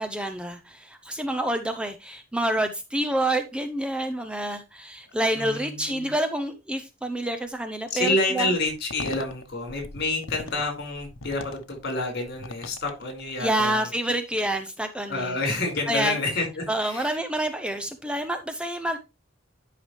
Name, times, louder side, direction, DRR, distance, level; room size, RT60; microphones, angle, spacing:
voice 1, 0.0-8.5 13.4-15.4 15.9-16.2 16.7-19.0, right 1 dB, 5° right, 0.6 m, -28 dB
voice 2, 5.3-6.1 7.9-13.9 15.1-17.1, left 2 dB, 55° left, 4.7 m, -28 dB
sound 1, 8.6-13.6, left 3 dB, 85° left, 1.0 m, -41 dB
11.0 x 5.8 x 3.2 m
head